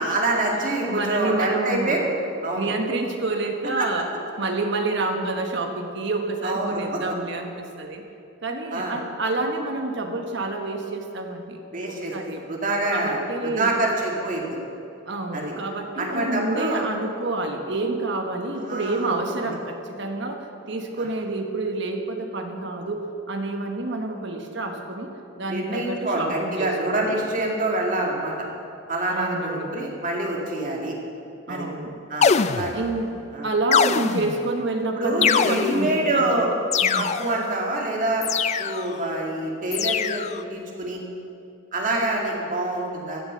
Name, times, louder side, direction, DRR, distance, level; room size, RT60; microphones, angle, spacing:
voice 1, 0.0-2.0 2.4-2.7 3.8-3.9 6.4-7.0 8.7-9.0 11.7-14.4 15.3-15.5 16.0-16.8 18.6-19.1 21.0-21.1 25.5-28.3 28.9-30.9 31.5-31.7 32.1-32.7 33.3-33.5 33.8-34.0 34.9-36.5 37.0-38.3 38.6-41.0 41.7-43.2, right 1 dB, 40° right, -1 dB, 2.2 m, -26 dB
voice 2, 0.8-2.1 2.6-4.1 4.4-8.0 8.4-11.6 12.1-12.4 12.9-13.7 15.1-25.1 25.4-27.2 29.1-29.7 31.5-32.0 32.7-36.4 36.8-37.1, right 2 dB, 60° right, 4 dB, 1.4 m, -28 dB
sound 1, 32.2-33.0 33.7-34.5 35.2-36.0 36.7-37.5 38.2-39.0 39.7-40.4, left 6 dB, 35° left, 0.3 m, -23 dB
15.5 x 7.3 x 7.5 m, 2.7 s
head